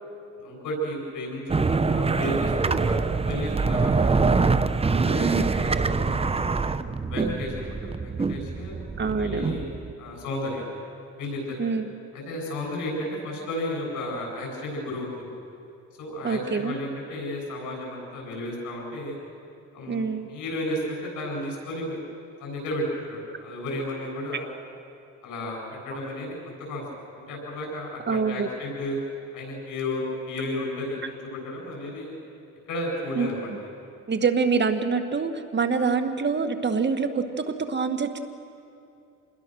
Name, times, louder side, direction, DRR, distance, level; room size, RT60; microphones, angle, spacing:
voice 1, 0.4-3.0 3.3-4.3 4.9-6.5 7.1-9.7 10.0-10.7 11.2-11.6 12.1-15.3 16.0-19.2 19.7-22.0 22.4-24.5 25.2-26.3 26.7-26.8 27.3-29.0 29.3-32.1 32.7-33.7, left 1 dB, 85° left, -1 dB, 8.0 m, -33 dB
sound 1, 1.5-9.9, right 4 dB, 20° right, 0.8 m, -24 dB
voice 2, 9.0-9.5 11.6-11.9 16.2-16.7 19.9-20.3 28.1-28.5 33.2-33.6 34.1-38.2, right 5 dB, 35° right, 7 dB, 1.8 m, -25 dB
27.5 x 21.0 x 6.3 m, 2.7 s
cardioid pair, 90°, 30 cm